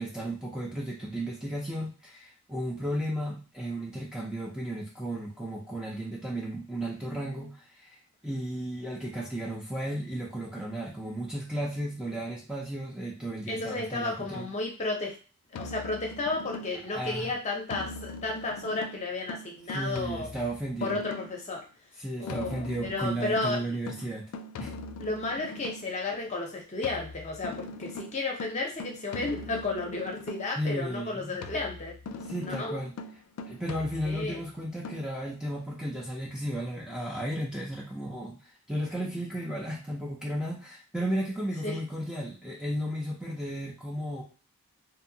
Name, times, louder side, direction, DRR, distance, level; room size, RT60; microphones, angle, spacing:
voice 1, 0.0-14.5 16.9-17.3 19.7-21.0 22.0-24.3 24.6-24.7 30.6-31.4 32.3-33.0 33.5-38.4 38.7-44.2, right 1 dB, 5° right, -4 dB, 0.5 m, -34 dB
voice 2, 13.5-15.1 15.5-20.3 20.8-21.6 22.2-23.6 25.0-31.9 32.4-32.8 34.0-34.4 41.6-41.8, left 3 dB, 30° left, 0 dB, 0.7 m, -33 dB
sound 1, 15.5-17.0 17.7-21.5 22.3-26.0 26.8-30.7 31.4-34.4 34.8-35.0, left 3 dB, 85° left, 0.3 m, -41 dB
2.6 x 2.3 x 2.7 m, 0.36 s
head